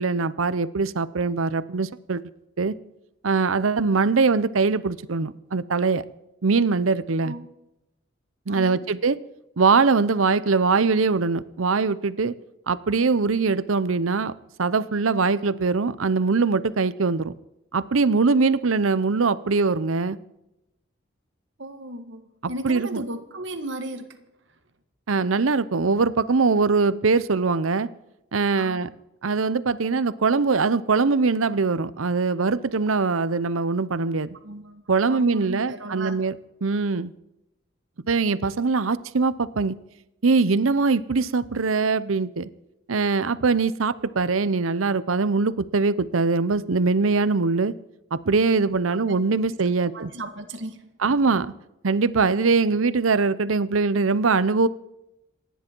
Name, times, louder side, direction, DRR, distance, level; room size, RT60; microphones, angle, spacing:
voice 1, 0.0-2.2 2.6-2.7 3.2-6.0 6.4-7.3 8.5-9.2 9.6-12.3 12.7-14.3 14.6-17.3 17.7-20.2 22.6-23.0 25.1-27.9 28.3-28.9 29.2-34.3 34.9-36.3 36.6-37.1 38.1-39.8 40.2-42.5 42.9-47.7 48.1-50.1 51.0-51.5 51.8-54.7, right 4 dB, 85° right, 17 dB, 0.7 m, -22 dB
voice 2, 8.5-8.8 21.6-24.2 28.5-28.9 34.4-36.2 49.1-49.5 49.8-50.9, right 1 dB, 65° right, 7 dB, 1.7 m, -36 dB
27.5 x 10.5 x 4.6 m, 0.90 s
head